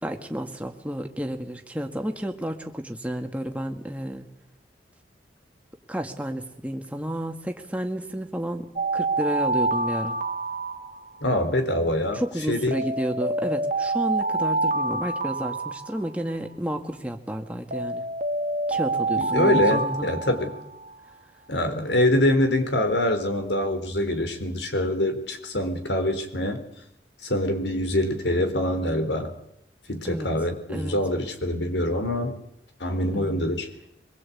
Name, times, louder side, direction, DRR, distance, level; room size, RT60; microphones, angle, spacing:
voice 1, 0.0-4.3 5.9-10.2 12.1-18.0 18.7-20.1 20.4-20.6 30.0-30.3 30.7-31.0 33.1-33.4, equal, 10° right, 4 dB, 2.0 m, -31 dB
Alarm, 8.8-11.4 12.7-16.4 17.7-20.9, right 2 dB, 45° right, 1.5 m, -27 dB
voice 2, 11.2-12.2 12.5-12.8 19.2-20.5 21.5-26.6 27.2-29.3 29.9-32.4 32.8-33.7, left 1 dB, 80° left, 8 dB, 3.9 m, -24 dB
24.0 x 22.0 x 8.6 m, 0.78 s
head